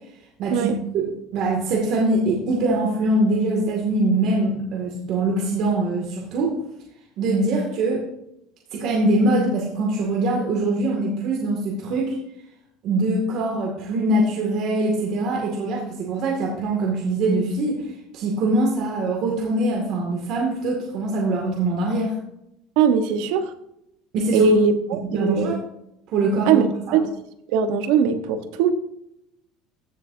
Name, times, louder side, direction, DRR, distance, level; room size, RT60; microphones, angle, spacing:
voice 1, 0.4-6.6 7.2-8.1 8.7-12.2 12.8-17.9 18.1-22.2 24.1-24.5 25.1-25.6 26.1-27.0, right 2 dB, 60° right, -1 dB, 2.2 m, -23 dB
voice 2, 22.8-23.5 24.3-25.5 26.5-26.7 26.9-27.1 27.5-28.7, right 5 dB, 80° right, 9 dB, 1.1 m, -20 dB
15.5 x 7.1 x 2.7 m, 0.80 s
cardioid pair, 130°, 0 cm